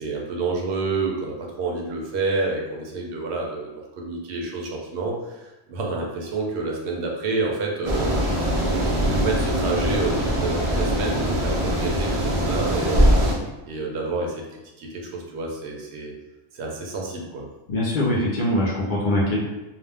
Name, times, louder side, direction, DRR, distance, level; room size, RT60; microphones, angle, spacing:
voice 1, 0.0-8.2 8.5-13.1 13.6-16.1 16.5-17.5, right 3 dB, 75° right, 0 dB, 0.8 m, -29 dB
sound 1, 7.8-13.3, equal, 55° right, 0.3 m, -22 dB
voice 2, 17.7-19.4, left 1 dB, 55° left, -5 dB, 0.6 m, -22 dB
2.4 x 2.1 x 3.3 m, 1.0 s
omnidirectional pair, 1.2 m